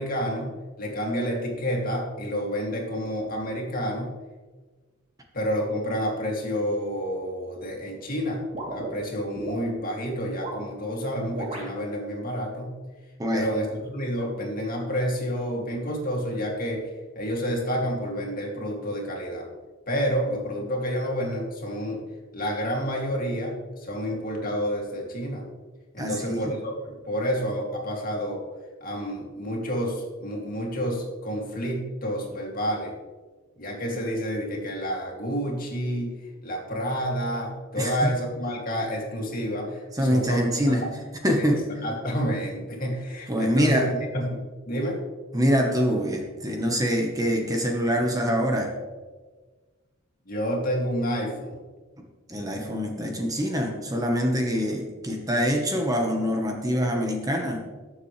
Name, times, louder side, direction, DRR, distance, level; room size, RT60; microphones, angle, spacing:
voice 1, 0.0-4.1 5.3-8.4 8.7-12.8 13.3-16.9 17.2-19.5 19.9-22.0 22.3-25.4 25.9-28.4 28.8-32.9 33.6-36.1 36.4-40.9 41.4-41.5 41.8-45.0 50.3-51.6, equal, 45° left, -1 dB, 2.5 m, -29 dB
sound 1, 8.5-9.6 10.3-10.7 11.3-11.7, right 1 dB, 35° right, 3.0 m, -35 dB
voice 2, 26.0-26.5 37.8-38.1 39.9-40.8 41.2-41.7 43.3-43.9 45.3-48.7 52.3-57.6, equal, 15° right, 1 dB, 1.2 m, -24 dB
19.0 x 7.2 x 3.3 m, 1.3 s
head